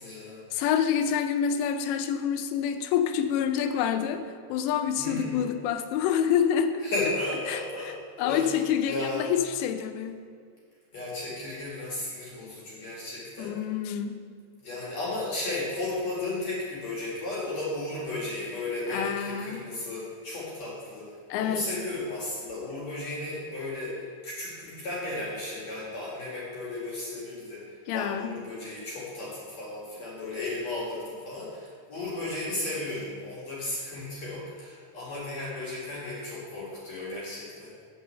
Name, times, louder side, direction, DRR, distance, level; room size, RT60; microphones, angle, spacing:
voice 1, 0.0-0.4 5.0-5.4 6.8-8.6 8.9-9.2 10.9-13.6 14.6-37.7, left 2 dB, 50° left, -6 dB, 2.4 m, -34 dB
voice 2, 0.5-6.9 7.5-7.9 8.2-10.2 13.4-14.2 18.9-19.6 21.3-21.7 27.9-28.4, left 8 dB, 80° left, 9 dB, 2.8 m, -27 dB
8.0 x 6.2 x 7.5 m, 2.1 s
omnidirectional pair, 5.2 m